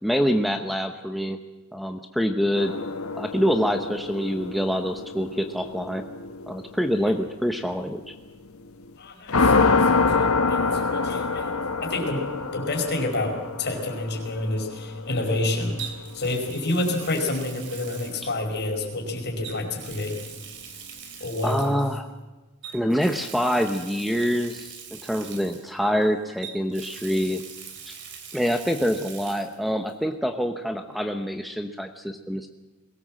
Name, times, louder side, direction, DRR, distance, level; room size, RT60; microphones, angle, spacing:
voice 1, 0.0-1.4 1.7-2.7 3.2-6.0 6.5-8.1 21.4-22.1 22.7-27.4 27.9-28.0 28.3-32.5, equal, ahead, 7 dB, 0.9 m, -26 dB
sound 1, 2.6-8.9 9.3-17.0, left 4 dB, 75° left, 1.3 m, -27 dB
voice 2, 9.0-11.5 11.8-12.2 12.5-20.1 21.2-21.8, left 2 dB, 50° left, 2 dB, 5.0 m, -29 dB
Water tap faucet, 12.8-13.0 15.8-18.8 19.4-21.9 22.6-26.0 26.4-29.6 29.9-30.0 31.5-31.6, right 7 dB, 55° right, 3.1 m, -42 dB
22.0 x 18.0 x 7.6 m, 1.2 s
head